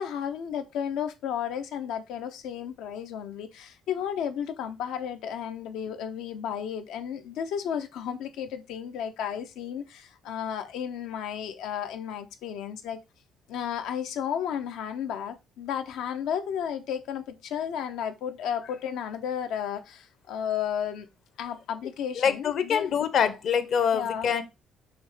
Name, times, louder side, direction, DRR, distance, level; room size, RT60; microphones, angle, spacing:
voice 1, 0.0-13.0 13.5-21.1 21.4-22.9 23.9-24.3, left 8 dB, 85° left, 0.9 m, -33 dB
voice 2, 22.2-24.4, left 7 dB, 55° left, 0.8 m, -25 dB
6.1 x 3.2 x 5.0 m
cardioid pair, 145°, 0 cm